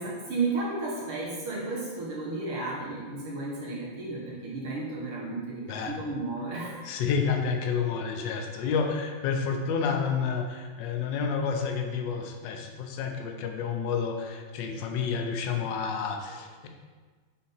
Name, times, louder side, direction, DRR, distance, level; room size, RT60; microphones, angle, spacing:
voice 1, 0.0-6.8, right 3 dB, 90° right, -5 dB, 2.4 m, -33 dB
voice 2, 6.8-16.7, left 6 dB, 70° left, 4 dB, 1.2 m, -30 dB
5.9 x 4.1 x 4.1 m, 1.4 s
omnidirectional pair, 2.3 m